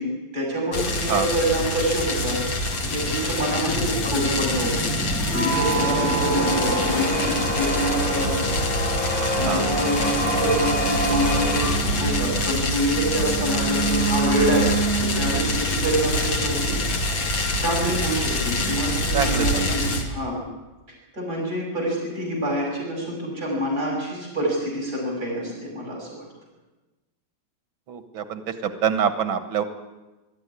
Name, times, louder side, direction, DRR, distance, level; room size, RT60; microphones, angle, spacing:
voice 1, 0.0-2.4 2.8-4.9 5.3-8.4 8.9-9.0 9.3-14.7 15.0-16.8 17.0-17.2 17.6-20.4 20.9-26.2, right 1 dB, 50° right, -2 dB, 7.2 m, -26 dB
sound 1, 0.7-20.0, left 1 dB, 75° left, 3.0 m, -26 dB
sound 2, 2.7-7.5, left 1 dB, 45° left, 3.2 m, -31 dB
sound 3, 5.2-15.6, right 2 dB, 5° left, 5.0 m, -27 dB
voice 2, 19.1-19.8 27.9-29.6, right 7 dB, 90° right, 9 dB, 2.2 m, -26 dB
21.5 x 13.0 x 9.8 m, 1.1 s
omnidirectional pair, 2.1 m